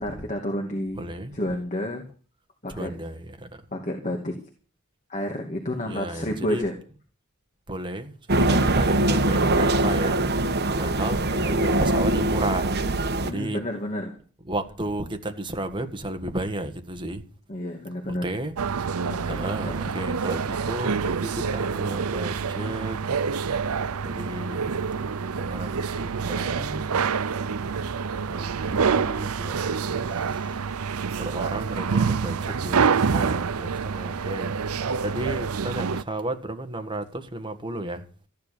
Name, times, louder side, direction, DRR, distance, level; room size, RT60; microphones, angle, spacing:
voice 1, 0.0-1.0 1.3-2.0 2.6-2.9 3.7-4.4 5.1-6.7 13.2-14.2 17.5-18.2 19.1-19.5 19.8-19.9, left 1 dB, 35° left, 2.5 m, -30 dB
voice 2, 1.0-1.4 2.7-3.6 5.9-6.6 7.7-10.4 10.8-12.7 13.2-13.6 14.5-17.2 18.2-18.5 19.2-23.0 24.0-24.7 25.3-26.9 28.3-30.6 31.2-34.5 35.0-38.0, right 1 dB, 20° right, 1.7 m, -33 dB
sound 1, 8.3-13.3, right 1 dB, 45° right, 1.3 m, -22 dB
sound 2, 18.6-36.0, right 5 dB, 85° right, 0.6 m, -27 dB
15.0 x 10.5 x 6.9 m
head